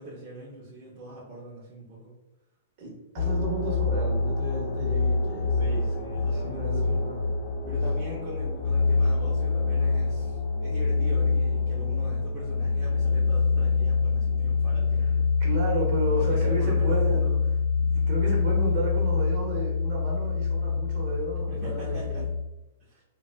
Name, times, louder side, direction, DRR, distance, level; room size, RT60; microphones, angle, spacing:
voice 1, 0.0-2.1 5.6-7.1 7.7-15.3 16.2-17.4 21.5-22.3 22.9-23.0, right 1 dB, 20° right, -8 dB, 0.6 m, -42 dB
voice 2, 2.8-5.8 6.2-7.3 15.0-15.1 15.4-22.3, right 1 dB, 40° right, -3 dB, 1.0 m, -33 dB
sound 1, 3.2-22.4, left 4 dB, 40° left, 0.6 m, -25 dB
3.9 x 2.2 x 2.2 m, 0.98 s
hypercardioid pair, 160°, 0 cm